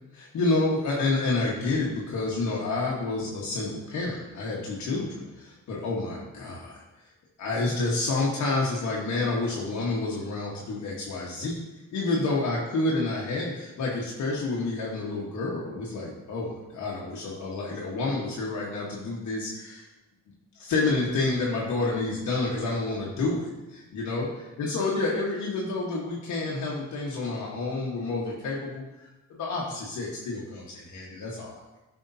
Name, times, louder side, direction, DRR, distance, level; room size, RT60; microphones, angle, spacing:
voice 1, 0.1-6.8 7.4-11.6 11.9-19.9 20.6-24.3 24.6-31.6, left 3 dB, 70° left, -4 dB, 1.4 m, -29 dB
11.0 x 5.0 x 2.8 m, 1.0 s
cardioid pair, 90°, 30 cm